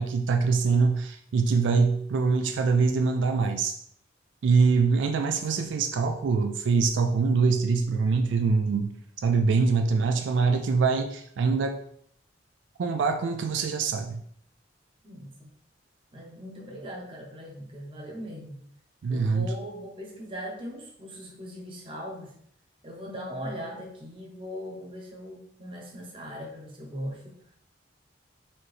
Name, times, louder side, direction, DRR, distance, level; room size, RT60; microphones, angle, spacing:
voice 1, 0.0-3.7 4.4-11.8 12.8-14.2 19.0-19.5, right 4 dB, 80° right, 6 dB, 0.3 m, -24 dB
voice 2, 15.0-15.5 16.1-18.6 19.1-22.3 22.8-27.4, equal, 30° right, 0 dB, 0.8 m, -39 dB
4.3 x 2.8 x 3.2 m, 0.66 s
head